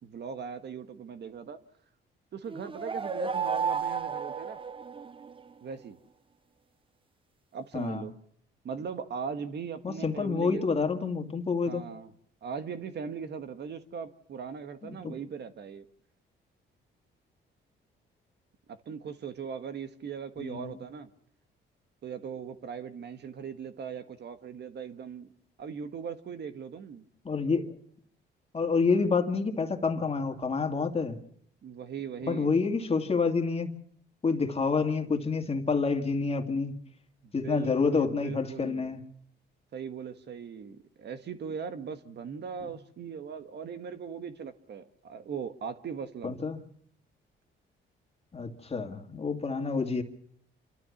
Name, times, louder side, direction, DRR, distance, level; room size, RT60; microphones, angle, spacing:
voice 1, 0.0-1.6 2.3-4.6 5.6-6.0 7.5-8.1 8.6-10.6 11.6-12.1 12.4-15.9 18.7-21.1 22.0-25.3 25.6-27.0 31.6-32.5 37.4-38.9 39.7-46.4, right 6 dB, 60° right, 1.5 m, -39 dB
sound 1, 2.5-5.4, right 6 dB, 25° right, 0.8 m, -32 dB
voice 2, 7.7-8.1 9.8-11.8 14.8-15.1 20.4-20.8 27.2-27.7 28.5-31.2 32.2-33.7 34.2-36.8 37.3-39.0 42.6-42.7 46.2-46.6 48.3-50.0, left 4 dB, 30° left, 2.2 m, -28 dB
27.5 x 13.0 x 7.2 m
cardioid pair, 90°, 20 cm